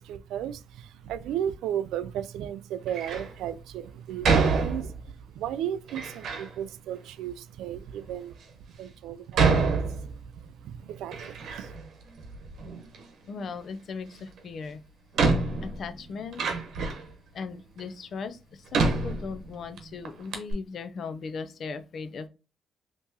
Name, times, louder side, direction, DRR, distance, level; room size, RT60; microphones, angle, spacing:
voice 1, 0.0-8.4 8.8-11.8, right 10 dB, 90° right, 0.3 m, -35 dB
Door, 2.9-3.3 4.2-5.2 5.9-6.5 7.3-7.4 8.1-8.2 9.3-10.5 10.8-11.9 12.2-13.0 14.4-14.5 15.1-17.1 17.8-17.9 18.7-19.8 20.0-20.1 20.3-20.5, right 4 dB, 70° right, 0.9 m, -27 dB
voice 2, 13.3-14.8 15.6-16.4 17.3-22.3, left 5 dB, 55° left, 0.5 m, -38 dB
3.5 x 2.9 x 2.7 m
cardioid pair, 90°, 0 cm